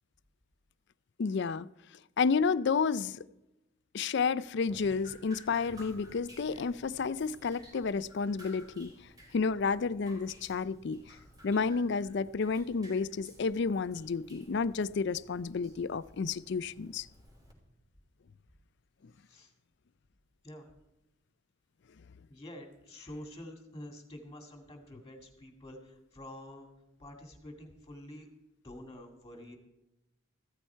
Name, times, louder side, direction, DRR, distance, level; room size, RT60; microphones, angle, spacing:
voice 1, 1.2-1.7 2.2-3.2 3.9-8.9 9.3-11.0 11.4-17.1, left 5 dB, 55° left, 0.4 m, -31 dB
Drip, 4.7-17.5, equal, 20° right, 3.3 m, -55 dB
voice 2, 22.3-26.7 27.0-28.3 28.6-29.6, left 1 dB, 15° left, 2.2 m, -48 dB
15.0 x 13.0 x 4.5 m
head